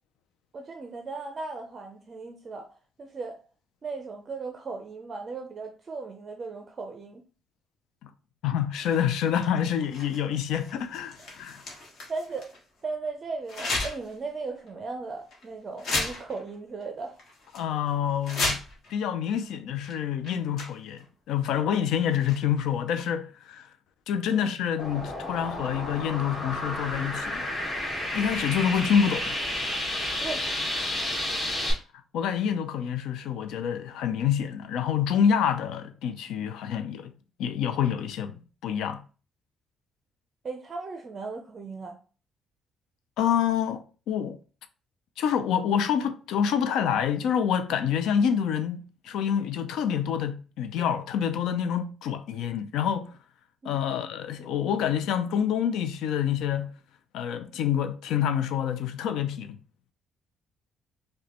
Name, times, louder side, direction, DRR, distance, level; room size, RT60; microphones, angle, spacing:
voice 1, 0.5-2.7 3.0-3.4 3.8-7.2 12.1-12.5 12.8-17.2 24.3-24.5 30.2-30.5 40.4-42.0 53.6-54.0, right 4 dB, 25° right, 0.5 m, -37 dB
voice 2, 8.4-11.6 17.5-18.6 18.9-23.7 24.1-27.5 28.1-29.3 32.1-37.1 37.4-39.0 43.2-44.4 45.2-53.1 53.6-56.7 57.1-59.6, left 8 dB, 80° left, 0.4 m, -27 dB
sound 1, 8.7-12.6 13.5-14.2 14.6-14.7 15.3-15.4 15.8-16.6 16.8-16.9 17.2-17.6 18.1-18.9 19.8-19.9 20.2-21.0 22.1-22.6, left 2 dB, 55° left, 1.2 m, -34 dB
sound 2, 24.8-31.7, left 1 dB, 25° left, 1.9 m, -31 dB
5.0 x 2.2 x 2.9 m
cardioid pair, 175°, 0 cm